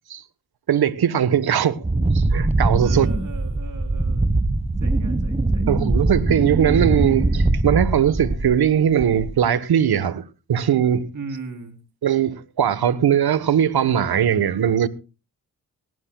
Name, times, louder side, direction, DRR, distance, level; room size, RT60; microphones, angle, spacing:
voice 1, 0.7-1.8 2.1-3.1 5.7-10.2 10.5-11.1 12.0-14.9, right 9 dB, 65° right, 1.3 m, -20 dB
Wind, 1.8-8.7 9.0-9.5, right 2 dB, 15° right, 1.3 m, -22 dB
voice 2, 2.8-4.3 4.8-5.8 11.1-11.8, right 4 dB, 45° right, 3.7 m, -38 dB
18.5 x 17.5 x 2.3 m
supercardioid pair, 50°, 41 cm